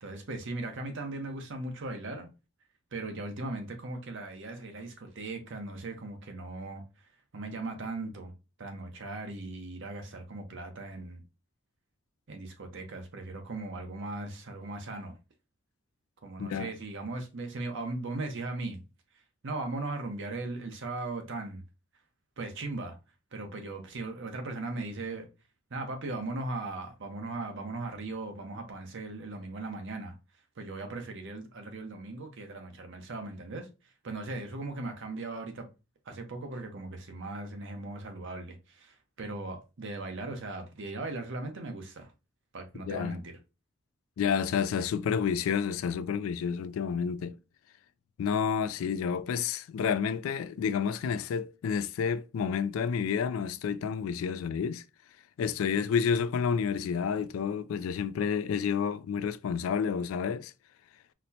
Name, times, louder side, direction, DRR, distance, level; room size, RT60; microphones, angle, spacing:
voice 1, 0.0-2.3 2.9-6.8 7.3-8.3 8.6-11.2 12.3-15.2 16.2-18.8 19.4-21.6 22.4-23.0 23.3-25.3 25.7-30.1 30.6-33.7 34.0-35.7 36.1-42.1 42.5-43.3, right 2 dB, 60° right, 0.8 m, -38 dB
voice 2, 16.4-16.7 42.8-43.2 44.2-47.4 48.2-54.8 55.4-60.5, left 6 dB, 75° left, 0.3 m, -30 dB
4.1 x 2.1 x 2.7 m
head